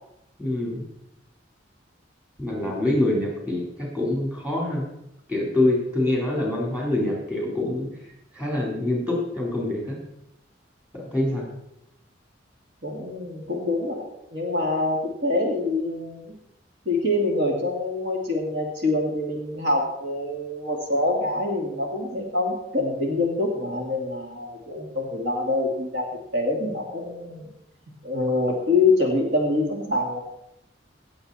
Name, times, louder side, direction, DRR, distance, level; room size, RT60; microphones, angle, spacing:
voice 1, 0.4-0.8 2.4-4.9 5.3-7.9 8.3-10.0 10.9-11.4, left 1 dB, 10° right, -3 dB, 3.9 m, -25 dB
voice 2, 12.8-14.0 14.3-16.3 16.9-27.5 28.0-30.2, left 2 dB, 70° right, 1 dB, 2.4 m, -25 dB
17.5 x 7.8 x 4.2 m, 0.81 s
head